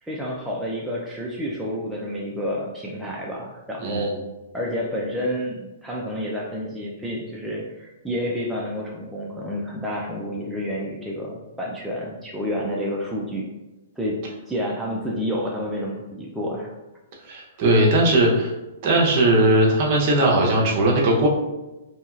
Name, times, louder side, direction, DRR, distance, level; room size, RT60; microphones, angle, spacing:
voice 1, 0.0-4.1 4.5-13.4 14.0-14.2 14.5-16.7 17.6-17.7, equal, 5° right, -5 dB, 0.3 m, -29 dB
voice 2, 17.3-18.5 18.8-21.3, right 1 dB, 40° right, -2 dB, 0.7 m, -18 dB
2.8 x 2.7 x 2.4 m, 1.0 s
hypercardioid pair, 150°, 0 cm